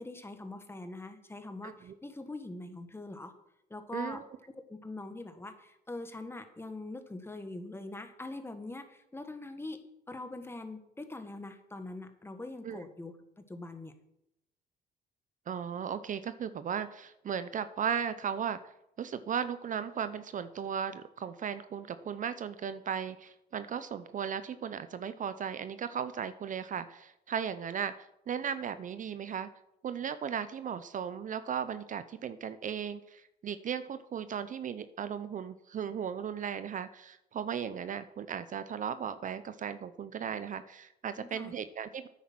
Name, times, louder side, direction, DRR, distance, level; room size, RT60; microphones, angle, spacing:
voice 1, 0.0-3.3 3.7-4.2 4.7-9.8 10.1-13.9 41.1-41.5, left 2 dB, 15° left, 8 dB, 1.4 m, -43 dB
voice 2, 1.6-1.9 3.9-4.2 12.6-12.8 15.5-18.7 19.0-29.5 29.8-42.1, right 8 dB, 45° right, 12 dB, 0.6 m, -36 dB
9.4 x 8.2 x 6.1 m, 0.82 s
cardioid pair, 105°, 19 cm